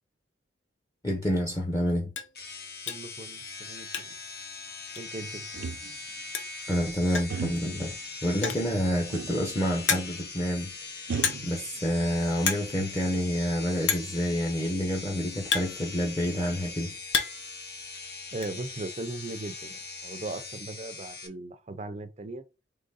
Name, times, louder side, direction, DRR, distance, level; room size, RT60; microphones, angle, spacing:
voice 1, 1.0-2.1 6.7-11.1 11.4-16.9, equal, 20° left, 0.7 m, -28 dB
sound 1, 1.2-1.3 1.7-1.8 2.1-2.4 2.9-3.2 3.5-4.3 4.6-4.7 5.0-5.1 6.1-6.2 6.3-6.7 7.1-7.4 8.3-8.8 9.3-9.4 9.9-10.3 11.2-11.6 11.9-12.1 12.4-12.7 13.0-13.1 13.9-14.2 15.0-16.3 16.7-17.5 17.8-18.5, left 6 dB, 85° left, 0.6 m, -30 dB
sound 2, 2.3-21.3, left 4 dB, 55° left, 0.9 m, -41 dB
voice 2, 2.9-4.2 5.0-5.5 18.3-19.8 20.0-22.4, right 2 dB, 35° right, 0.5 m, -38 dB
sound 3, 5.5-6.2 7.3-7.9 9.1-9.5 9.8-9.9 11.1-12.1 12.5-13.3, right 4 dB, 90° right, 0.5 m, -37 dB
3.7 x 3.1 x 4.0 m
head